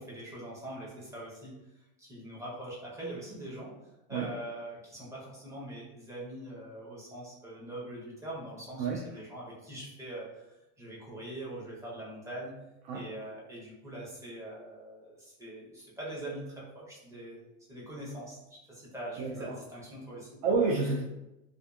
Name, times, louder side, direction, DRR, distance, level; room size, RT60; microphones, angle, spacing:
voice 1, 0.0-1.6 2.0-3.7 4.1-12.5 12.9-20.4, right 1 dB, 10° right, -6 dB, 0.8 m, -43 dB
voice 2, 19.2-19.6 20.4-21.0, right 4 dB, 80° right, 0 dB, 0.5 m, -29 dB
2.6 x 2.3 x 2.3 m, 0.94 s
supercardioid pair, 125°, 33 cm